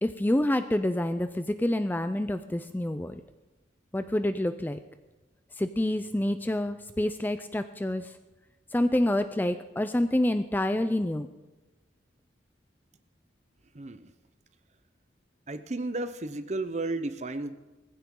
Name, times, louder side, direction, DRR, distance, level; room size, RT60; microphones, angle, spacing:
voice 1, 0.0-3.1 3.9-4.8 5.6-8.1 8.7-11.3, left 1 dB, 10° left, 10 dB, 0.4 m, -27 dB
voice 2, 13.7-14.1 15.5-17.6, right 2 dB, 35° right, 10 dB, 0.7 m, -33 dB
19.0 x 15.0 x 3.8 m, 1.2 s
head